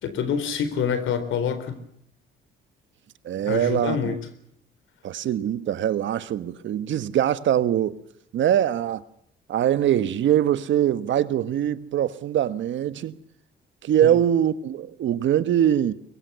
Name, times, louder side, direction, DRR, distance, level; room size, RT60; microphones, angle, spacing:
voice 1, 0.0-1.8 3.4-4.2 14.0-14.1, left 7 dB, 80° left, 4.0 m, -26 dB
voice 2, 3.2-4.2 5.0-8.0 8.3-9.0 9.5-13.1 13.8-15.9, right 10 dB, 70° right, 1.4 m, -23 dB
23.5 x 22.5 x 6.9 m
cardioid pair, 90°, 20 cm